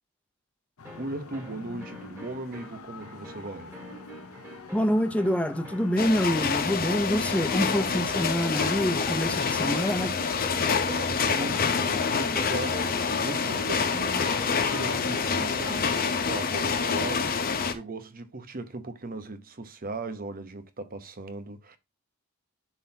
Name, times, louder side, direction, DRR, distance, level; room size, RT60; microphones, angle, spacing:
sound 1, 0.8-15.2, left 3 dB, 80° left, 0.8 m, -44 dB
sound 2, 0.8-16.3, right 1 dB, 10° right, 2.0 m, -44 dB
voice 1, 1.0-3.8 10.8-13.0 13.2-21.8, right 2 dB, 40° right, 0.9 m, -38 dB
voice 2, 4.7-10.1, equal, 5° left, 0.7 m, -26 dB
sound 3, 6.0-17.7, left 5 dB, 40° left, 0.8 m, -27 dB
11.0 x 4.0 x 2.8 m
head